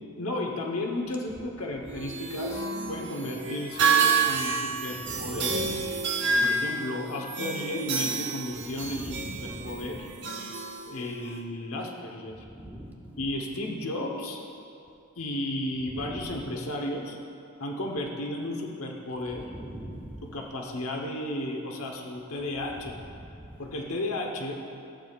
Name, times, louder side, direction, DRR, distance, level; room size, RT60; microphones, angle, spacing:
voice 1, 0.2-5.8 6.4-10.1 10.9-12.4 13.2-14.4 15.2-17.2 17.6-19.4 20.2-23.0 23.6-24.6, left 1 dB, 80° left, 1 dB, 1.0 m, -33 dB
sound 1, 1.9-11.4, right 4 dB, 55° right, 0.9 m, -29 dB
voice 2, 5.0-5.8 8.8-10.0 12.3-13.3 15.9-16.4 19.3-20.3 23.2-23.6, right 1 dB, 10° right, 0 dB, 0.5 m, -42 dB
14.0 x 8.5 x 2.4 m, 2.6 s
head